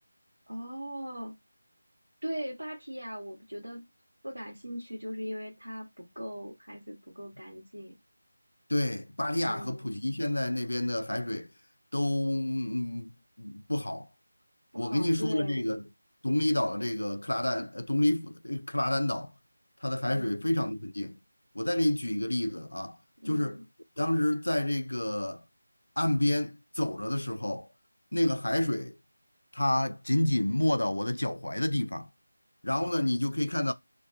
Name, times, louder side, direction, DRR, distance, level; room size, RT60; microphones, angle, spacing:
voice 1, 0.5-1.3 2.2-3.8 4.2-8.0 9.5-9.8 14.7-15.7 20.1-20.4 23.2-23.6, equal, 70° right, 0.9 m, -39 dB
voice 2, 8.7-11.5 11.9-14.1 14.8-15.8 16.2-19.3 19.8-21.2 21.5-23.0 23.3-23.6 24.0-25.4 26.0-27.7 28.1-29.0 29.5-32.1 32.6-33.7, left 1 dB, 70° left, 0.4 m, -29 dB
2.3 x 2.2 x 2.5 m
figure-of-eight pair, 165°, 0 cm